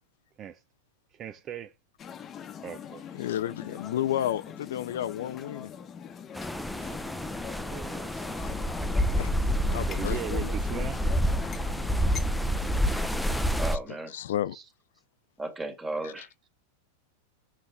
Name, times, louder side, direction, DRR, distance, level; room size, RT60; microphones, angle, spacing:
voice 1, 1.1-1.7 2.6-3.1 7.7-8.1 9.9-11.0 14.5-14.7, right 9 dB, 35° right, 0.5 m, -39 dB
sound 1, 2.0-13.0, left 8 dB, 30° left, 1.0 m, -43 dB
voice 2, 3.1-5.7 6.8-7.0 8.2-8.5 9.2-9.3 9.7-10.9 14.1-14.6, left 11 dB, 70° left, 0.4 m, -32 dB
sound 2, 6.3-13.8, equal, ahead, 0.7 m, -28 dB
voice 3, 13.6-14.1 15.4-16.3, right 2 dB, 15° right, 2.0 m, -35 dB
6.5 x 5.8 x 3.5 m
hypercardioid pair, 100°, 0 cm